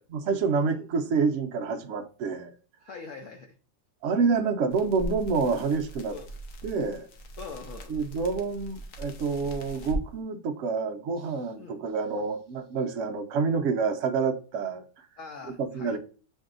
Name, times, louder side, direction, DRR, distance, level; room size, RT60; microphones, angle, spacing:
voice 1, 0.1-2.5 4.0-6.1 6.6-7.1 7.9-14.8 15.7-16.0, right 5 dB, 80° right, 0.6 m, -28 dB
voice 2, 2.8-3.5 6.1-6.3 7.4-8.1 11.2-11.9 15.2-16.0, left 4 dB, 85° left, 0.6 m, -44 dB
sound 1, 4.7-10.0, right 1 dB, 60° left, 0.9 m, -39 dB
7.3 x 2.7 x 2.4 m
omnidirectional pair, 2.0 m